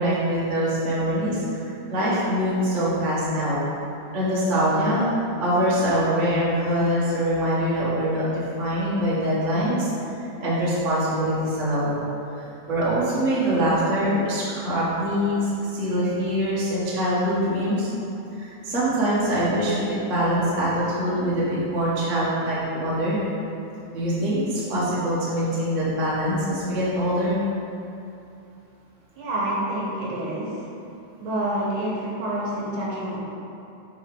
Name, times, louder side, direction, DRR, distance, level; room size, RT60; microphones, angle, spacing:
voice 1, 0.0-3.6 4.1-5.1 5.4-10.1 10.4-12.0 12.3-17.9 18.4-23.2 23.9-27.4, equal, 50° right, -9 dB, 0.9 m, -24 dB
voice 2, 29.2-30.7 31.2-33.2, right 1 dB, 70° right, -5 dB, 2.3 m, -28 dB
7.5 x 4.8 x 3.8 m, 2.8 s
omnidirectional pair, 4.1 m